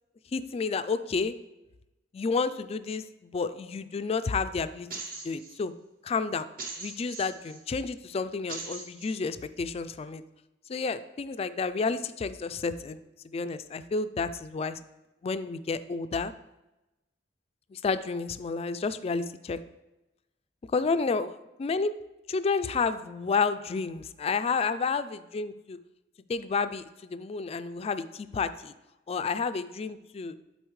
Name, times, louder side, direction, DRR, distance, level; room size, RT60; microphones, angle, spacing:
voice 1, 0.3-1.3 2.1-3.0 3.3-4.9 5.2-5.7 6.0-6.5 6.8-10.2 10.7-13.0 13.3-14.8 15.2-16.3 17.7-19.6 20.7-21.9 22.3-25.0 25.3-25.8 26.3-28.7 29.1-30.4, left 4 dB, 35° left, 12 dB, 0.3 m, -30 dB
sound 1, 4.9-5.6 6.6-7.6 8.5-9.2, right 3 dB, 50° right, 1.2 m, -40 dB
11.0 x 4.2 x 3.1 m, 0.98 s
head